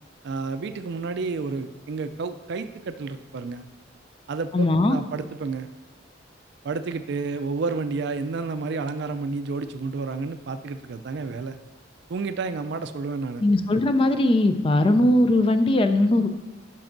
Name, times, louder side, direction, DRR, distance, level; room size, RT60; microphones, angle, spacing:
voice 1, 0.2-3.7 4.3-5.7 6.6-11.6 12.1-13.4, right 4 dB, 60° right, 10 dB, 0.4 m, -30 dB
voice 2, 4.5-5.0 13.4-16.3, left 1 dB, 30° left, 9 dB, 0.4 m, -20 dB
10.5 x 6.1 x 2.6 m, 1.1 s
head